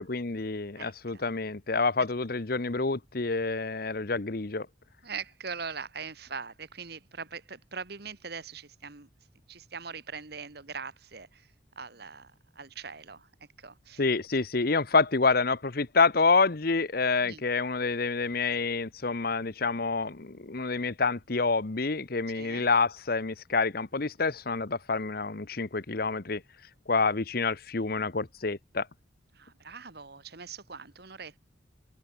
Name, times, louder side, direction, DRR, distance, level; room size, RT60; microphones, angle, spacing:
voice 1, 0.0-4.7 14.0-26.4 26.9-28.9, left 4 dB, 50° left, 1.0 m, -27 dB
voice 2, 0.8-1.2 5.0-9.1 9.5-13.3 13.6-14.0 17.2-17.4 22.3-22.7 29.3-31.4, right 5 dB, 55° right, 1.5 m, -42 dB
open air
head